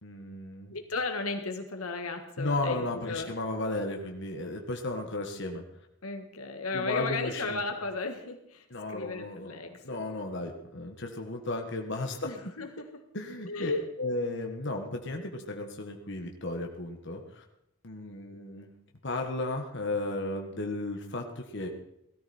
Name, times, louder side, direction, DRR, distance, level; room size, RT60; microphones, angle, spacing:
voice 1, 0.0-0.7 2.4-5.6 6.7-7.6 8.7-9.6 9.8-12.3 13.1-17.4 17.8-18.7 19.0-21.7, left 2 dB, 55° left, 2 dB, 1.6 m, -34 dB
voice 2, 0.7-3.3 6.0-10.0 12.2-12.9 13.5-13.8, left 3 dB, 90° left, 6 dB, 1.8 m, -35 dB
17.5 x 13.5 x 4.4 m, 0.81 s
head